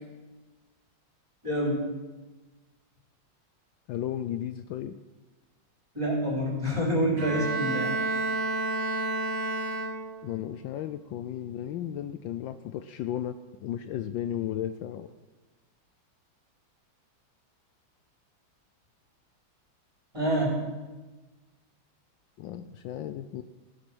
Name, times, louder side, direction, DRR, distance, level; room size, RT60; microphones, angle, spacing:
voice 1, 1.4-1.8 5.9-7.9 20.1-20.6, equal, 15° right, -3 dB, 3.9 m, -27 dB
voice 2, 3.9-5.0 10.2-15.1 22.4-23.4, left 11 dB, 75° left, 11 dB, 1.3 m, -34 dB
Bowed string instrument, 7.2-10.4, right 2 dB, 35° right, 2.2 m, -30 dB
16.0 x 9.7 x 6.1 m, 1.2 s
omnidirectional pair, 2.2 m